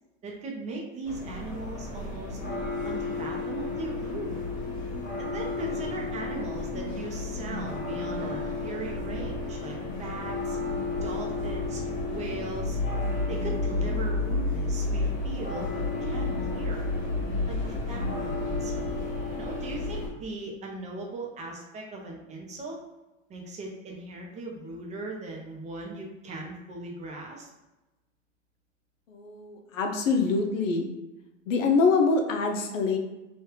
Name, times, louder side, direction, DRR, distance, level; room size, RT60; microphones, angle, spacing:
voice 1, 0.2-2.4 2.8-4.4 5.2-10.6 11.0-11.8 12.1-12.8 13.3-16.9 17.5-18.9 19.3-22.8 23.3-27.5, right 2 dB, 20° right, -1 dB, 0.6 m, -39 dB
sound 1, 1.0-20.1, left 2 dB, 25° left, 1.0 m, -31 dB
voice 2, 29.1-30.9 31.5-33.0, left 4 dB, 80° left, 3 dB, 0.7 m, -25 dB
3.0 x 2.3 x 3.2 m, 1.0 s
hypercardioid pair, 125°, 39 cm